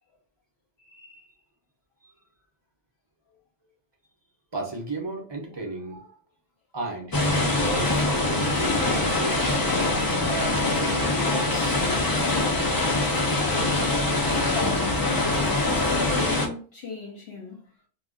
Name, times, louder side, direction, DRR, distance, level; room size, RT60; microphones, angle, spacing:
voice 1, 0.8-1.3 14.3-17.6, left 5 dB, 70° left, 0.9 m, -37 dB
voice 2, 4.5-6.1 6.7-9.6 10.2-11.8, right 3 dB, 30° right, 0.6 m, -35 dB
sound 1, 7.1-16.5, left 2 dB, 35° left, 0.4 m, -24 dB
2.4 x 2.1 x 3.6 m
omnidirectional pair, 1.1 m